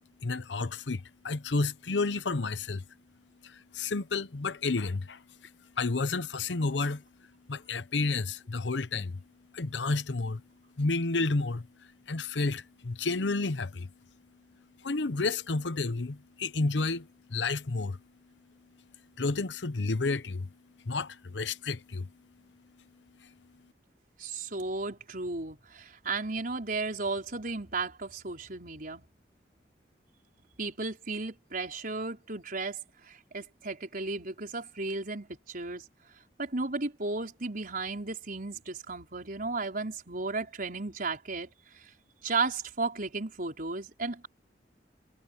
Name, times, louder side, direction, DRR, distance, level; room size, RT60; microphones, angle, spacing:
voice 1, 0.2-2.8 3.4-5.2 5.8-7.0 7.5-9.2 9.5-10.4 10.8-11.7 12.1-13.9 14.8-18.0 19.2-20.5 20.8-22.1, left 3 dB, 85° left, 0.9 m, -31 dB
voice 2, 24.2-29.0 30.6-35.8 36.4-41.5 41.8-41.9 42.2-44.3, right 3 dB, 50° right, 5.1 m, -34 dB
head